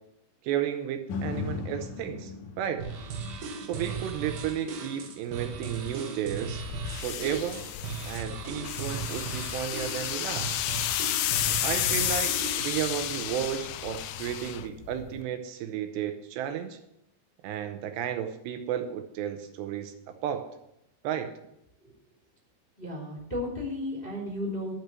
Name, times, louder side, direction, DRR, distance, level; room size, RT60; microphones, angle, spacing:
voice 1, 0.4-2.9 3.6-6.7 7.0-7.6 8.0-10.5 11.4-16.8 17.4-20.5 21.0-21.3, right 10 dB, 80° right, 7 dB, 2.9 m, -33 dB
sound 1, 1.1-9.3 9.7-9.8, left 5 dB, 70° left, 2.0 m, -41 dB
sound 2, 2.8-12.9, right 5 dB, 65° right, 2.2 m, -37 dB
sound 3, 6.6-15.2, left 13 dB, 85° left, 2.3 m, -32 dB
voice 2, 22.8-24.7, left 1 dB, 15° left, -2 dB, 2.3 m, -34 dB
12.5 x 5.9 x 7.5 m, 0.81 s
omnidirectional pair, 5.1 m